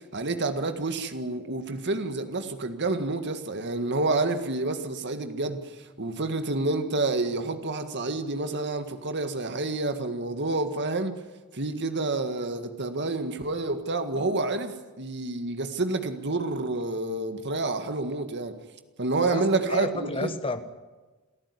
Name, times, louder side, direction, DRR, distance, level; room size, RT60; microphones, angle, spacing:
voice 1, 0.0-5.7 6.0-11.2 11.5-18.6 19.0-20.4, right 2 dB, 50° right, 8 dB, 1.8 m, -29 dB
voice 2, 19.2-20.6, left 2 dB, 25° left, 10 dB, 1.3 m, -32 dB
27.5 x 14.0 x 9.7 m, 1.2 s
head